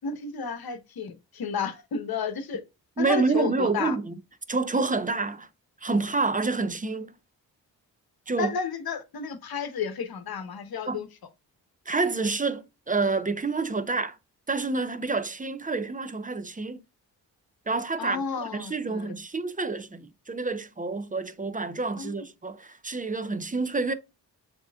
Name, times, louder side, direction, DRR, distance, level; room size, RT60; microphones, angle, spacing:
voice 1, 0.0-2.6 3.0-4.0 8.4-11.1 18.0-19.1 22.0-22.1, left 6 dB, 60° left, 1.1 m, -32 dB
voice 2, 3.0-4.2 4.5-5.5 5.8-7.1 8.3-8.5 10.9-11.0 11.9-14.2 14.5-16.8 17.7-18.2 18.5-23.9, right 3 dB, 20° right, 0.7 m, -28 dB
7.1 x 3.0 x 2.3 m
supercardioid pair, 45°, 42 cm